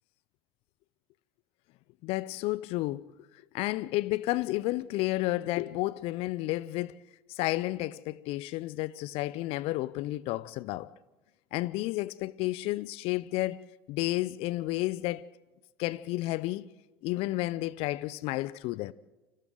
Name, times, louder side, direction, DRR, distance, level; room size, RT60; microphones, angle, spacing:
voice 1, 2.0-3.1 3.5-6.9 7.3-10.9 11.5-15.2 15.8-16.7 17.0-18.9, left 18 dB, 50° left, 0.7 m, -31 dB
29.5 x 27.0 x 4.0 m
figure-of-eight pair, 70°, 12 cm